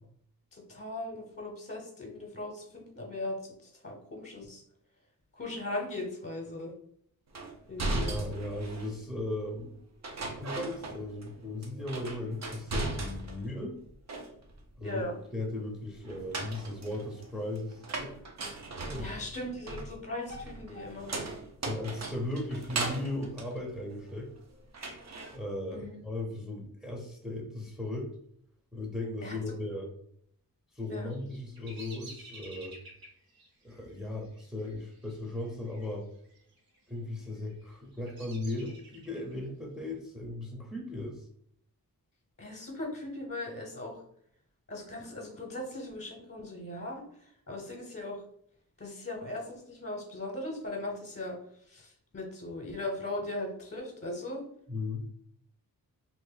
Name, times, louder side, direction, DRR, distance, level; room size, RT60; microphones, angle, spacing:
voice 1, 0.5-4.6 5.3-6.7 7.7-8.2 14.8-15.1 19.0-21.2 25.7-26.0 29.2-29.4 30.9-31.1 42.4-44.0 44.7-47.0 47.5-48.2 48.8-51.4 51.7-54.4, left 2 dB, 35° left, -1 dB, 0.9 m, -38 dB
sound 1, 7.3-9.0 10.0-11.3 11.6-13.5 13.8-14.7 16.1-24.4 24.7-25.4, right 2 dB, 45° right, 0.7 m, -37 dB
voice 2, 8.0-9.7 10.3-13.8 14.8-15.0 15.3-18.1 18.9-19.1 21.6-24.3 25.3-28.1 28.7-29.9 30.7-32.8 33.6-36.1 36.9-41.2 54.7-55.1, left 2 dB, ahead, -2 dB, 0.8 m, -37 dB
Bird vocalization bird call bird song, 30.9-35.9 36.2-36.8 37.4-39.3, right 2 dB, 75° right, 1.2 m, -52 dB
2.7 x 2.5 x 3.9 m, 0.66 s
wide cardioid pair, 85°, 36 cm